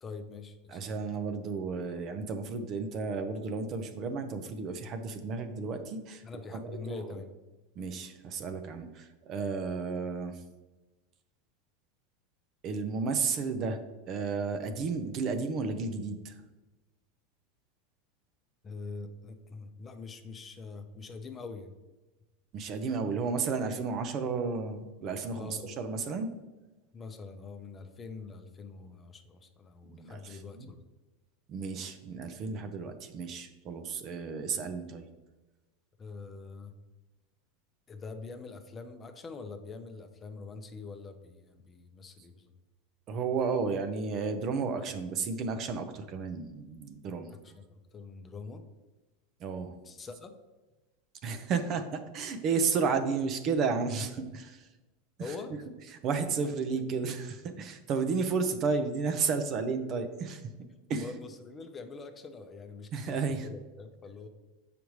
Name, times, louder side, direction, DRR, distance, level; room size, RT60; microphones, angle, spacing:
voice 1, 0.0-1.0 6.2-7.3 18.6-21.7 25.3-25.7 26.9-30.8 36.0-36.7 37.9-42.5 47.3-48.6 49.8-50.3 55.2-55.6 56.7-56.8 61.0-64.3, left 4 dB, 25° left, 6 dB, 0.7 m, -44 dB
voice 2, 0.7-6.2 6.5-7.2 7.8-10.4 12.6-13.8 14.1-16.4 22.5-26.3 29.8-30.7 31.5-35.0 43.1-47.4 49.4-49.8 51.2-54.7 55.2-55.3 56.0-60.5 60.9-61.1 62.9-63.5, right 5 dB, 40° right, 8 dB, 0.6 m, -32 dB
6.9 x 5.1 x 3.1 m, 1.1 s
supercardioid pair, 120°, 0 cm